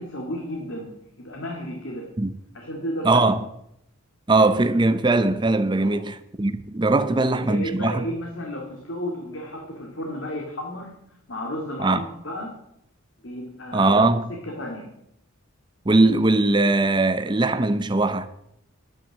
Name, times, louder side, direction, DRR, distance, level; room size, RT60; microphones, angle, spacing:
voice 1, 0.0-2.1 2.5-3.3 5.8-6.0 7.0-11.0 11.3-12.6 13.2-13.9 14.4-14.9, equal, 60° left, 2.2 m, -33 dB
voice 2, 3.0-3.4 4.3-8.0 11.8-12.0 13.7-14.3 15.9-18.3, right 2 dB, 20° right, 0.6 m, -20 dB
10.5 x 9.9 x 7.3 m
head